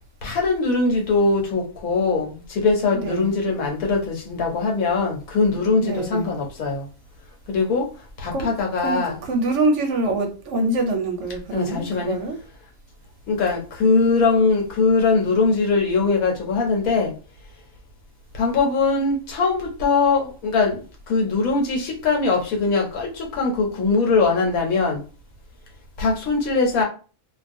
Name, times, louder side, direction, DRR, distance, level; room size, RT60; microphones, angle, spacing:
voice 1, 0.2-6.8 7.5-7.9 8.2-9.2 11.5-12.1 13.3-17.1 18.4-20.8 21.1-25.0 26.0-26.8, left 4 dB, 90° left, 1 dB, 1.2 m, -21 dB
voice 2, 2.9-3.3 5.8-6.3 8.3-8.5 8.8-12.4, right 2 dB, 65° right, 4 dB, 0.9 m, -25 dB
2.3 x 2.3 x 2.6 m, 0.36 s
omnidirectional pair, 1.5 m